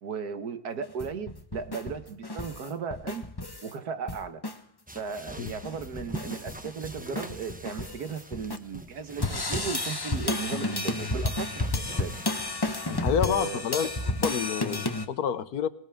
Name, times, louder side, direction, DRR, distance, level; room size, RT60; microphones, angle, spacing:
voice 1, 0.0-3.2 3.6-4.4 4.9-12.1 13.2-13.6, right 5 dB, 80° right, 8 dB, 1.8 m, -36 dB
sound 1, 0.8-3.7 4.1-4.6 4.9-5.0 5.3-8.6 9.2-15.1, left 2 dB, 20° left, 0.9 m, -32 dB
sound 2, 4.9-14.4, right 1 dB, 10° right, 0.6 m, -44 dB
voice 2, 12.9-13.9 14.2-15.7, left 8 dB, 80° left, 13 dB, 1.4 m, -28 dB
21.0 x 19.0 x 3.6 m, 0.71 s
omnidirectional pair, 1.6 m